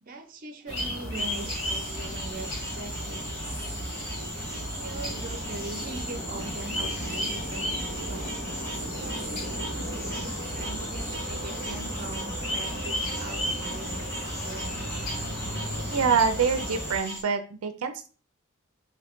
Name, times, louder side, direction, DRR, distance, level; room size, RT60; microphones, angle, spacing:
voice 1, 0.0-3.4 4.7-8.3 9.0-9.7 9.9-14.0 14.4-14.7, right 2 dB, 40° right, 6 dB, 0.6 m, -41 dB
sound 1, 0.7-17.0, equal, 70° left, 1.5 m, -34 dB
sound 2, 1.1-17.2, equal, 15° left, 1.7 m, -38 dB
sound 3, 10.0-16.1, equal, 10° right, 1.5 m, -44 dB
voice 2, 15.9-18.1, right 6 dB, 85° right, 8 dB, 0.5 m, -25 dB
3.7 x 2.8 x 3.5 m, 0.38 s
head